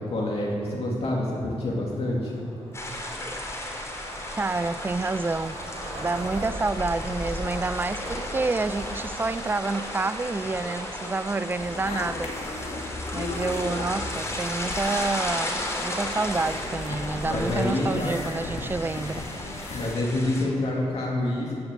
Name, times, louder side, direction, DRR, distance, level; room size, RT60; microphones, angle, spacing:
voice 1, 0.0-2.3 17.2-18.1 19.7-21.5, left 1 dB, 60° left, 2.3 m, -27 dB
Skateboard, 1.4-18.4, right 2 dB, 60° right, 3.3 m, -45 dB
sound 1, 2.7-20.4, left 1 dB, 25° left, 3.2 m, -34 dB
voice 2, 4.4-5.6 6.0-12.3 13.1-19.4, right 3 dB, 20° right, 0.4 m, -28 dB
sound 2, 11.6-19.9, left 2 dB, 75° left, 2.2 m, -36 dB
15.0 x 7.2 x 8.4 m
cardioid pair, 90°, 11 cm